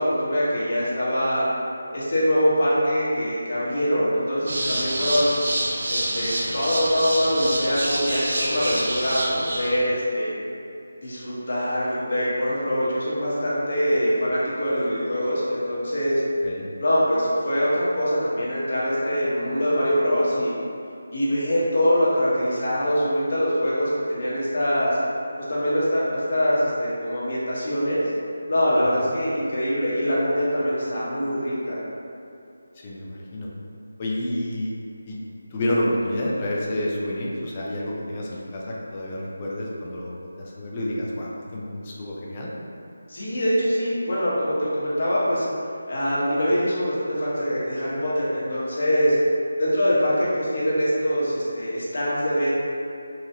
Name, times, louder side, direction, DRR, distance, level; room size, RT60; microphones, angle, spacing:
voice 1, 0.0-1.5 1.9-5.3 5.9-10.3 11.0-16.2 16.8-20.5 21.1-25.0 25.4-28.0 28.5-31.8 43.1-45.4 45.9-49.1 49.6-52.5, equal, 55° left, -8 dB, 1.2 m, -23 dB
sound 1, 4.5-9.7, right 1 dB, 60° right, 0.6 m, -27 dB
voice 2, 32.8-33.5 34.0-34.7 35.1-35.2 35.5-42.5, left 1 dB, 25° left, -4 dB, 0.5 m, -29 dB
3.6 x 3.0 x 2.8 m, 2.6 s
figure-of-eight pair, 165°, 0 cm